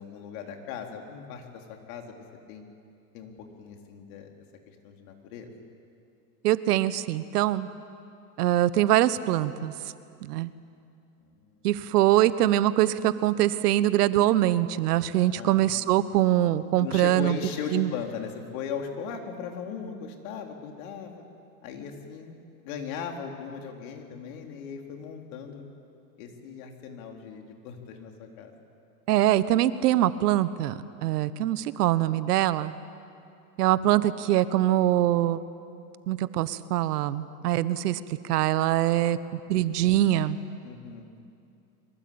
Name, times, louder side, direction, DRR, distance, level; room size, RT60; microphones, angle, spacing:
voice 1, 0.0-2.2 2.5-2.6 3.1-3.3 3.6-4.3 4.8-5.5 11.2-11.7 15.3-15.7 16.8-21.2 21.6-22.4 22.6-25.6 26.2-28.5 33.8-34.0 40.6-41.1, left 7 dB, 60° left, 3 dB, 3.8 m, -38 dB
voice 2, 6.4-7.7 8.4-9.7 10.2-10.5 11.6-17.4 17.7-17.9 29.1-32.7 33.6-35.4 36.1-40.4, right 13 dB, 75° right, 15 dB, 1.2 m, -23 dB
24.0 x 21.5 x 8.8 m, 2.6 s
supercardioid pair, 125°, 47 cm